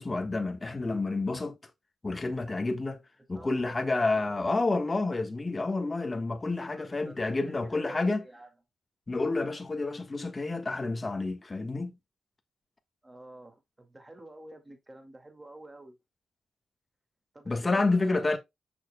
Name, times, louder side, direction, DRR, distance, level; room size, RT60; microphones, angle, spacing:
voice 1, 0.0-1.6 2.0-3.0 3.3-8.2 9.1-11.9 17.5-18.4, left 3 dB, 30° left, 1.4 m, -29 dB
voice 2, 3.3-3.8 4.3-4.7 6.7-8.5 13.0-16.0 17.3-18.4, right 1 dB, 20° right, 2.1 m, -49 dB
6.9 x 6.0 x 2.3 m
cardioid pair, 70°, 0 cm